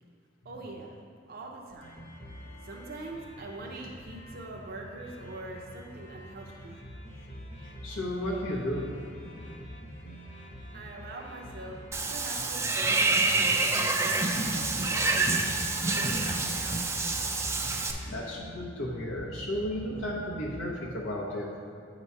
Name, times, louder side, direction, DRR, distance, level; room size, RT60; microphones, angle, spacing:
voice 1, 0.4-1.0 1.3-2.0 2.6-6.8 10.7-11.8 12.1-15.5 15.9-16.9, right 2 dB, 50° right, -1 dB, 0.6 m, -43 dB
sound 1, 1.8-20.7, equal, 40° left, 0.9 m, -45 dB
voice 2, 7.8-8.9 18.0-21.5, left 1 dB, 90° left, -4 dB, 0.9 m, -33 dB
Water / Bathtub (filling or washing), 11.9-17.9, right 3 dB, 15° right, 0.3 m, -27 dB
8.2 x 3.0 x 5.5 m, 2.3 s
head